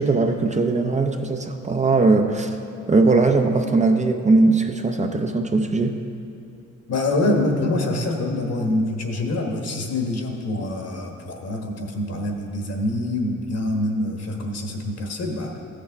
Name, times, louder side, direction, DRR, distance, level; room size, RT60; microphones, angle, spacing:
voice 1, 0.0-2.6 2.9-6.0, right 3 dB, 25° right, 4 dB, 0.6 m, -19 dB
voice 2, 6.9-15.5, left 1 dB, 55° left, 2 dB, 1.4 m, -25 dB
14.5 x 6.6 x 3.5 m, 2.6 s
cardioid pair, 90°, 30 cm